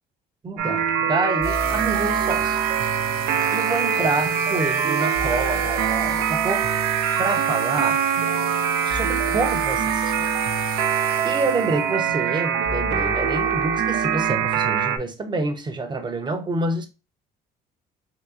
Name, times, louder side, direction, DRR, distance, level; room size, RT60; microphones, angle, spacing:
voice 1, 0.4-2.6 3.5-6.7 7.2-8.0 8.8-10.3 11.2-16.9, right 3 dB, 25° right, 0.6 m, -27 dB
sound 1, 0.6-15.0, right 7 dB, 90° right, 0.6 m, -23 dB
sound 2, 1.4-12.0, right 6 dB, 65° right, 0.8 m, -37 dB
3.6 x 2.9 x 2.7 m
cardioid pair, 110°, 17 cm